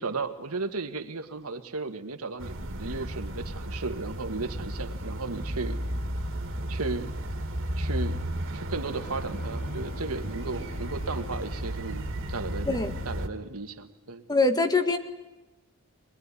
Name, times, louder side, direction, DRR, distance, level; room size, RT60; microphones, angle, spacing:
voice 1, 0.0-5.8 6.7-7.1 7.8-8.2 8.5-12.7 13.0-14.2, right 3 dB, 80° right, 8 dB, 1.7 m, -35 dB
sound 1, 2.4-13.3, right 1 dB, 60° right, 2.3 m, -34 dB
Bowed string instrument, 8.8-13.1, left 2 dB, 85° left, 3.3 m, -49 dB
voice 2, 14.3-15.0, left 3 dB, 20° left, 8 dB, 1.7 m, -23 dB
23.5 x 21.5 x 9.8 m, 1.0 s
head